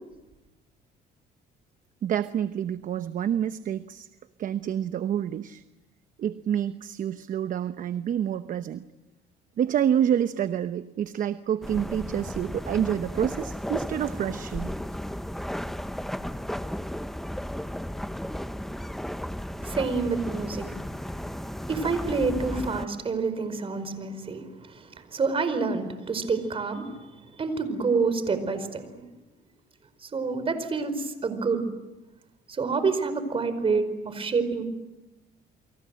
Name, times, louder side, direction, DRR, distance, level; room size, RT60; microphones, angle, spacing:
voice 1, 2.0-4.1 4.4-5.6 6.2-8.9 9.6-14.7, right 9 dB, 50° right, 11 dB, 0.9 m, -28 dB
sound 1, 11.6-22.9, equal, ahead, 0.9 m, -34 dB
voice 2, 19.6-20.7 21.7-24.4 24.7-26.8 27.4-29.0 30.0-31.6 32.5-34.6, right 4 dB, 35° right, 11 dB, 4.8 m, -27 dB
29.5 x 24.5 x 7.7 m, 1.0 s
cardioid pair, 110°, 17 cm